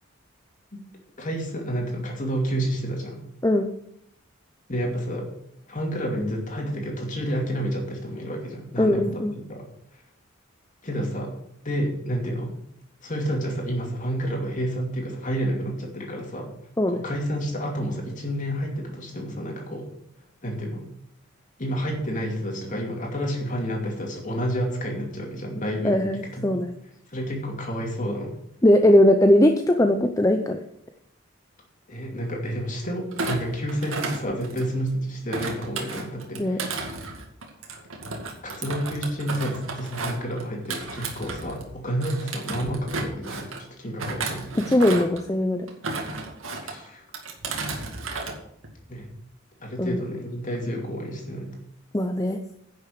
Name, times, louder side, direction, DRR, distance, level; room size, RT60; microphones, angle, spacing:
voice 1, 1.2-3.2 4.7-5.3 5.7-9.6 10.8-11.3 11.6-12.5 13.0-16.5 16.9-19.9 20.4-20.8 21.6-26.6 27.1-28.4 31.9-36.9 38.4-43.5 43.8-44.6 46.6-47.1 48.9-49.1 49.6-51.5, equal, 40° left, 1 dB, 2.7 m, -30 dB
voice 2, 8.8-9.3 16.8-17.0 25.8-26.7 28.6-30.6 36.4-36.6 44.5-45.7 49.8-50.0 51.9-52.4, left 1 dB, 15° left, 5 dB, 0.6 m, -20 dB
Thump thud, 33.1-34.9 35.3-41.7 42.0-43.6 44.0-45.2 45.7-46.7 47.1-48.4 48.6-49.0, right 3 dB, 80° right, 2.2 m, -33 dB
10.5 x 6.6 x 6.7 m, 0.76 s
head